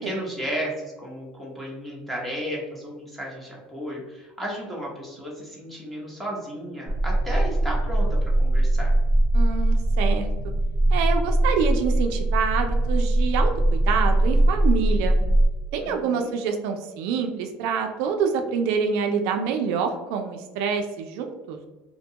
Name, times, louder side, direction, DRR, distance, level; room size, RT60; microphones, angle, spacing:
voice 1, 0.0-8.9 15.8-16.3, equal, ahead, -4 dB, 0.7 m, -34 dB
sound 1, 6.9-15.5, right 1 dB, 45° left, 0.7 m, -21 dB
voice 2, 9.3-10.3 10.9-15.2 15.7-21.6, right 6 dB, 75° right, 4 dB, 0.3 m, -26 dB
2.6 x 2.2 x 2.8 m, 1.1 s
cardioid pair, 145°, 4 cm